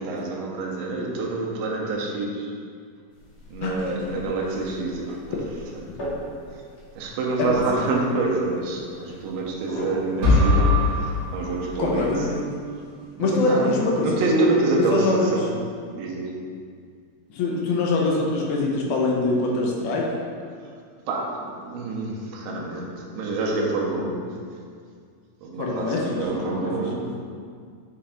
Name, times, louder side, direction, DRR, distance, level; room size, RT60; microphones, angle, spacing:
voice 1, 0.0-2.5 3.5-5.4 5.7-6.6 7.0-12.3 13.1-15.6 15.9-16.5 20.6-20.7 21.1-24.4 25.4-27.2, right 3 dB, 75° right, -1 dB, 2.5 m, -27 dB
sound 1, 3.1-12.1, equal, 55° left, 1.5 m, -40 dB
voice 2, 3.6-4.1 7.5-7.6 11.8-12.5 13.2-14.5 14.9-15.4 17.3-20.1 25.6-26.9, left 2 dB, 85° left, -2 dB, 2.7 m, -24 dB
sound 2, 10.2-12.3, left 2 dB, 55° right, 1.7 m, -21 dB
8.5 x 5.1 x 2.6 m, 2.1 s
omnidirectional pair, 4.4 m